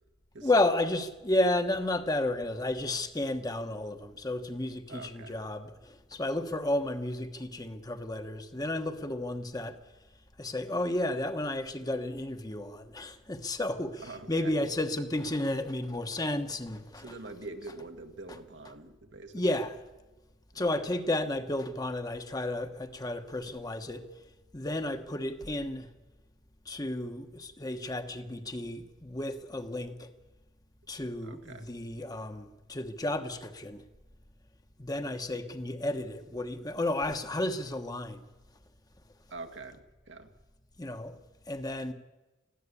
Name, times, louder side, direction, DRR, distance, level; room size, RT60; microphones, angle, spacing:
voice 1, 0.4-9.8 10.4-17.1 19.3-19.8 20.5-24.1 24.5-25.9 26.6-30.1 30.9-33.8 34.8-38.2 40.8-41.2 41.5-41.9, left 1 dB, 20° left, 1.2 m, -32 dB
voice 2, 4.9-5.4 14.0-14.6 17.0-19.6 20.5-20.7 31.2-31.7 39.3-40.3, right 3 dB, 75° right, 1.8 m, -45 dB
21.0 x 15.0 x 8.4 m
head